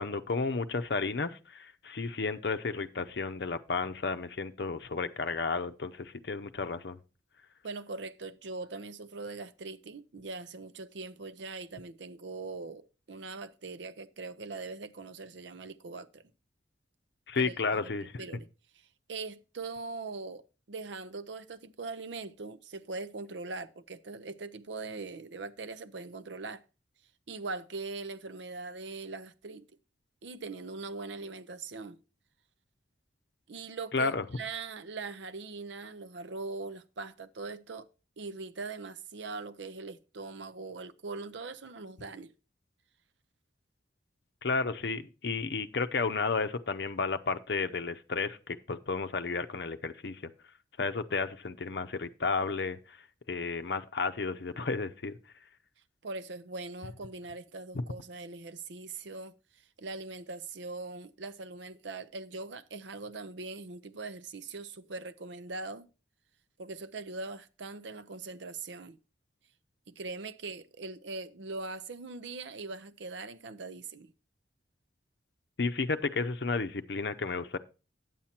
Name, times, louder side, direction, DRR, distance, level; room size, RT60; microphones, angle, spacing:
voice 1, 0.0-7.0 17.3-18.2 33.9-34.2 44.4-50.2 50.8-52.8 53.3-55.1 57.7-57.8 75.6-77.6, left 4 dB, 65° left, 0.6 m, -32 dB
voice 2, 7.6-16.2 17.3-17.5 17.8-18.5 19.1-20.4 20.7-26.6 27.3-29.7 30.2-32.0 33.5-37.9 38.2-42.3 56.0-59.3 59.8-65.9 66.6-69.0 69.9-74.1, right 3 dB, 75° right, 0.6 m, -41 dB
9.3 x 7.3 x 4.3 m
head